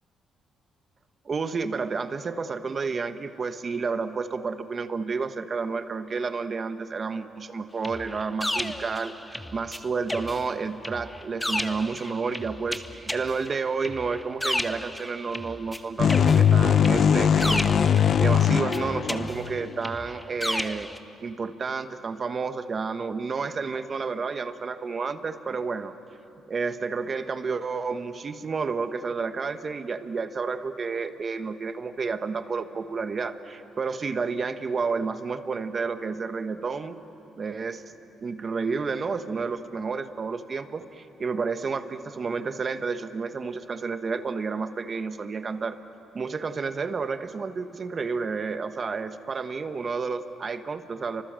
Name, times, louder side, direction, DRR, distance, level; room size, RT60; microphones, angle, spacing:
voice 1, 1.2-17.6 18.2-20.9 21.2-25.9 26.5-37.0 37.4-37.8 38.2-45.8 46.1-51.2, right 4 dB, 40° right, 9 dB, 1.3 m, -30 dB
sound 1, 7.8-9.8 10.1-15.8 16.1-18.3 18.7-21.0, left 1 dB, 5° left, 1.1 m, -33 dB
sound 2, 16.0-19.7, left 7 dB, 55° left, 0.8 m, -20 dB
29.5 x 24.5 x 7.6 m, 2.9 s
cardioid pair, 90°, 0 cm